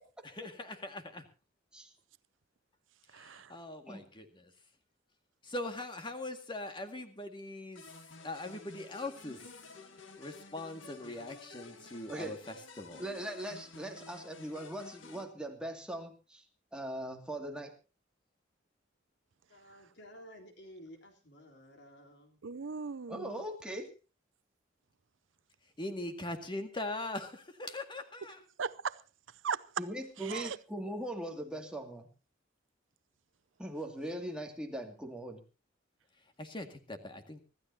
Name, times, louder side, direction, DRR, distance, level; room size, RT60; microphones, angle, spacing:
voice 1, 0.2-1.3 3.1-4.5 5.4-7.8 8.2-9.5 10.2-13.1 25.8-28.4 36.4-37.4, left 2 dB, 25° left, 2.0 m, -41 dB
voice 2, 3.1-3.5 22.4-23.3 28.6-29.0 29.4-29.6 30.2-30.6, right 6 dB, 75° right, 0.6 m, -37 dB
sound 1, 7.7-15.2, left 3 dB, 80° left, 1.8 m, -52 dB
voice 3, 13.0-16.4 16.7-17.7 23.1-23.9 29.8-32.1 33.6-35.4, right 1 dB, 5° right, 2.4 m, -40 dB
voice 4, 19.5-22.4, equal, 65° left, 3.8 m, -53 dB
25.5 x 13.5 x 2.8 m
head